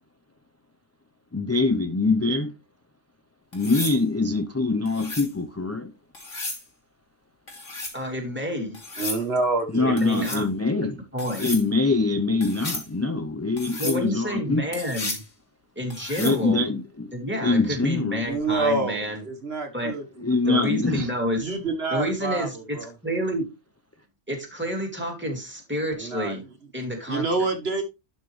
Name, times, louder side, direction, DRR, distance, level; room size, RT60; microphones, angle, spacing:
voice 1, 1.3-2.5 3.5-5.9 9.7-11.0 11.4-14.6 16.2-17.1 17.4-18.3 20.2-21.1, left 3 dB, 20° left, 0.5 m, -24 dB
sound 1, 3.5-4.0 4.9-5.3 6.1-6.6 7.5-8.0 8.7-9.2 10.0-10.4 11.2-11.6 12.4-12.9 13.6-14.0 14.7-15.3 15.9-16.4 18.3-18.6, left 2 dB, 85° left, 3.2 m, -34 dB
voice 2, 7.9-9.1 9.8-10.4 11.1-11.4 13.8-15.2 15.8-16.6 17.1-19.2 19.7-19.9 20.5-21.5 21.9-23.5 24.3-26.4 26.7-27.2, equal, 10° right, 3.0 m, -29 dB
voice 3, 9.0-10.2 18.3-20.0 20.4-20.6 21.4-22.9 25.9-26.4 27.1-27.8, right 3 dB, 55° right, 1.7 m, -27 dB
11.5 x 5.8 x 3.2 m
omnidirectional pair, 1.3 m